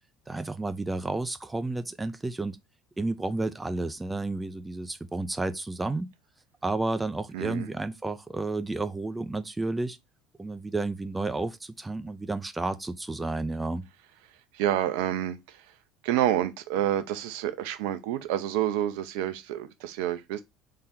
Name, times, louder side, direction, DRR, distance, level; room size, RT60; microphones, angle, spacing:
voice 1, 0.3-2.6 3.0-6.1 6.6-10.0 10.4-13.9, right 2 dB, 15° right, 0.6 m, -31 dB
voice 2, 7.3-7.7 14.5-15.6 16.0-20.4, right 11 dB, 65° right, 0.6 m, -28 dB
3.7 x 3.2 x 3.9 m
figure-of-eight pair, 65°, 0 cm